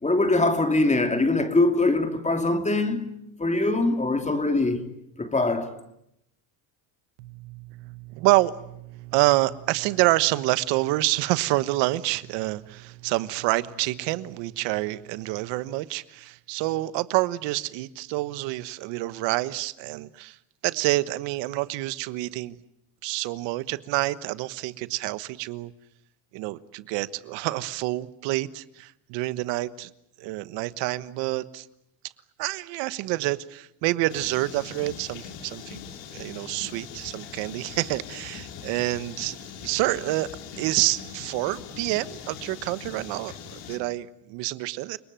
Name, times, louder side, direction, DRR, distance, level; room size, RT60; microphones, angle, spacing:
voice 1, 0.0-4.9 5.2-5.7, left 2 dB, 15° left, 2.9 m, -23 dB
voice 2, 7.2-20.4 20.6-22.6 23.0-25.7 26.3-29.9 30.2-31.7 32.4-35.8 36.1-40.3 40.6-45.0, right 19 dB, 75° right, 1.3 m, -27 dB
sound 1, 34.1-43.8, left 8 dB, 80° left, 3.6 m, -41 dB
30.0 x 19.5 x 9.0 m
supercardioid pair, 100°, 43 cm